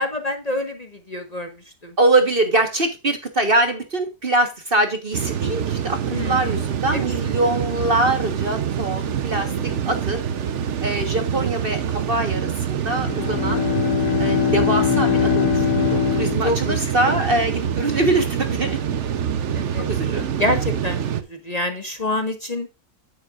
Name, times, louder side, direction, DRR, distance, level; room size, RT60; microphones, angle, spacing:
voice 1, 0.0-2.0 6.1-6.5 6.9-7.0 7.2-7.3 9.3-9.9 16.4-17.2 19.5-19.9 20.4-22.7, left 1 dB, 25° left, 5 dB, 1.4 m, -27 dB
voice 2, 2.0-9.5 9.9-10.2 10.8-13.6 14.2-18.8 19.8-20.2, right 2 dB, 40° right, 6 dB, 1.4 m, -23 dB
sound 1, 5.1-21.2, right 8 dB, 55° right, 1.0 m, -25 dB
Bowed string instrument, 12.9-17.3, left 10 dB, 85° left, 1.3 m, -22 dB
9.9 x 9.5 x 2.5 m, 0.26 s
omnidirectional pair, 1.6 m